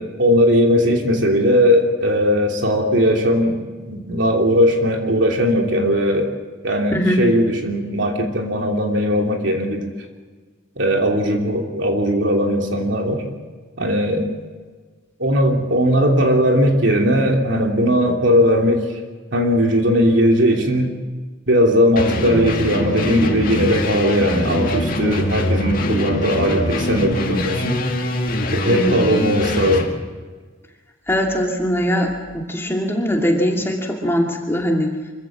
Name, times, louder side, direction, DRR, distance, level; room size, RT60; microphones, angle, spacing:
voice 1, 0.0-3.6 3.9-6.3 6.6-9.9 10.8-13.2 13.8-14.3 15.2-18.9 19.3-20.9 21.5-27.8 28.5-29.9, equal, 65° right, 2 dB, 3.0 m, -18 dB
voice 2, 6.9-7.2 28.7-29.0 31.1-35.0, equal, 10° left, 0 dB, 2.5 m, -21 dB
sound 1, 22.0-29.9, left 1 dB, 45° left, 2.3 m, -23 dB
25.5 x 15.0 x 7.5 m, 1.4 s
head